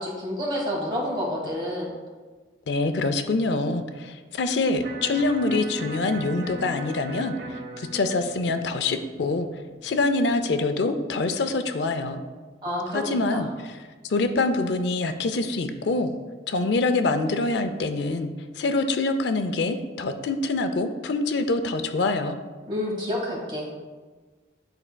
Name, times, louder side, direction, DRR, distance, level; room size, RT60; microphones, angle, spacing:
voice 1, 0.0-1.9 12.6-13.0 13.3-13.4 22.7-23.7, left 1 dB, 25° right, -4 dB, 1.6 m, -29 dB
voice 2, 2.7-7.4 7.8-9.5 9.8-12.2 12.9-13.5 14.0-16.1 16.5-18.3 18.6-22.4, left 3 dB, 75° left, 8 dB, 0.4 m, -25 dB
Electric guitar, 4.8-10.9, right 2 dB, 70° right, 1.0 m, -40 dB
10.5 x 4.3 x 2.2 m, 1.4 s
head